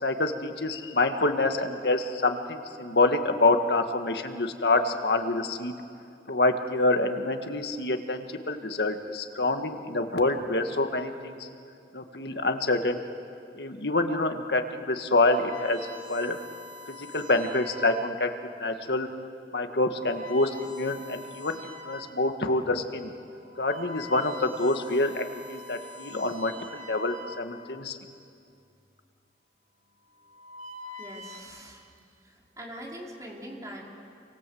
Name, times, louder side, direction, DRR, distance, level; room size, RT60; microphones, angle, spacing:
voice 1, 0.0-5.7 6.3-11.4 11.9-13.0 13.5-15.8 16.1-16.4 16.9-18.3 18.6-19.1 19.5-21.6 21.9-23.1 23.6-28.0, left 2 dB, 65° left, 6 dB, 1.7 m, -26 dB
sound 1, 14.9-18.3 19.0-19.2 19.8-22.2 22.7-22.8 23.3-27.8 28.8-29.2 30.1-31.4, left 1 dB, 50° right, 5.1 m, -45 dB
voice 2, 31.0-31.8 32.2-33.9, equal, 20° right, -2 dB, 4.0 m, -42 dB
29.5 x 24.5 x 7.9 m, 2.4 s
head